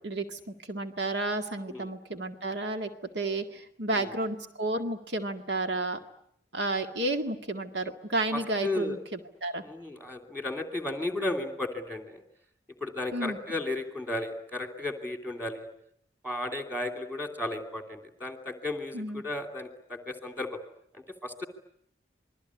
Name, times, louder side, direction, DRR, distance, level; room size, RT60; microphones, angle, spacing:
voice 1, 0.0-2.9 3.1-6.0 6.5-9.6 13.1-13.4 18.9-19.2, right 2 dB, 75° right, 6 dB, 2.0 m, -32 dB
voice 2, 8.3-9.0 9.6-12.2 12.8-15.7 16.2-20.6 20.9-21.5, left 2 dB, 10° right, 4 dB, 2.6 m, -34 dB
27.5 x 21.0 x 9.8 m, 0.72 s
head